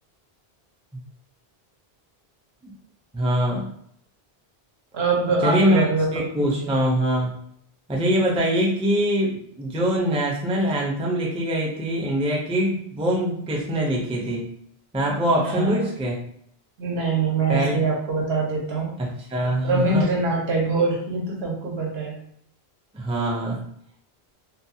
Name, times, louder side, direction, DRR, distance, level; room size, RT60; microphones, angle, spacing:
voice 1, 3.1-3.7 5.4-5.9 6.1-7.4 7.9-14.5 14.9-16.2 17.5-17.7 19.0-20.0 22.9-23.6, equal, 10° right, -3 dB, 0.3 m, -23 dB
voice 2, 4.9-6.1 6.4-6.7 15.4-15.8 16.8-18.9 19.6-22.2, right 3 dB, 80° right, -1 dB, 1.0 m, -24 dB
2.6 x 2.2 x 2.7 m, 0.66 s
omnidirectional pair, 1.1 m